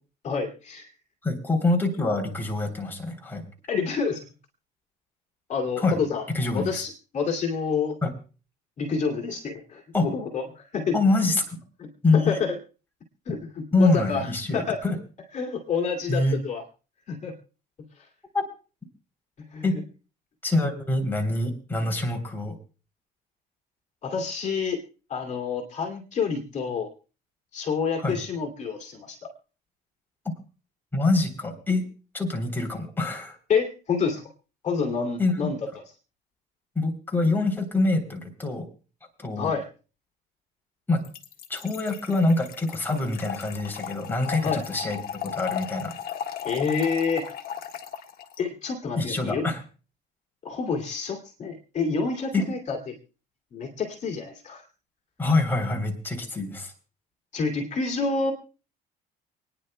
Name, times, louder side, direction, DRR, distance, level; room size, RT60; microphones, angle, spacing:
voice 1, 0.2-0.9 3.7-4.2 5.5-6.2 6.5-8.0 8.8-11.0 11.8-12.6 13.3-14.8 15.3-16.6 17.1-17.3 19.5-19.8 24.0-24.8 25.1-26.9 27.5-29.3 33.5-34.2 34.6-35.6 39.4-39.7 44.4-44.6 46.4-47.3 48.4-49.5 50.4-53.0 53.5-54.6 57.3-58.3, left 5 dB, 45° left, 2 dB, 2.8 m, -28 dB
voice 2, 1.2-3.5 5.8-6.0 6.3-6.8 8.0-8.1 9.9-10.1 10.9-11.6 12.0-12.4 13.3-13.4 13.7-15.0 16.1-16.4 18.3-18.4 19.6-19.8 20.4-22.6 28.0-28.2 30.9-31.8 32.1-33.4 35.2-35.5 36.7-38.7 39.2-39.5 40.9-41.0 41.5-45.9 49.0-49.6 52.3-52.5 55.2-56.7, left 2 dB, 10° left, 2 dB, 3.4 m, -25 dB
Trickle dribble / Fill (with liquid), 41.0-48.4, left 9 dB, 60° left, 1.6 m, -36 dB
29.0 x 10.0 x 2.2 m, 0.35 s
cardioid pair, 110°, 17 cm